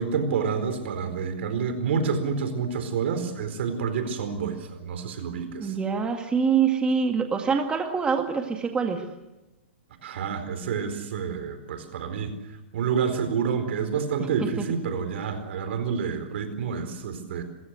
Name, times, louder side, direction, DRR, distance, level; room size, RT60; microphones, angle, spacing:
voice 1, 0.0-5.7 10.0-12.3 12.7-17.4, right 6 dB, 70° right, 9 dB, 4.4 m, -28 dB
voice 2, 5.6-9.0 14.4-14.7, right 6 dB, 15° right, 4 dB, 2.0 m, -25 dB
28.0 x 15.5 x 8.2 m, 1.1 s
hypercardioid pair, 130°, 7 cm